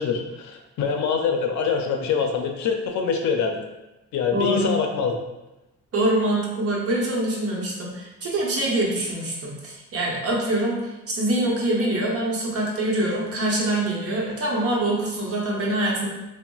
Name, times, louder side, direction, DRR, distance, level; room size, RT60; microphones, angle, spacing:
voice 1, 0.0-3.6 4.1-5.1, left 5 dB, 70° left, 3 dB, 0.5 m, -24 dB
voice 2, 4.3-4.7 5.9-16.1, right 1 dB, 50° right, -3 dB, 0.9 m, -24 dB
3.7 x 2.1 x 2.3 m, 0.98 s
cardioid pair, 90°, 30 cm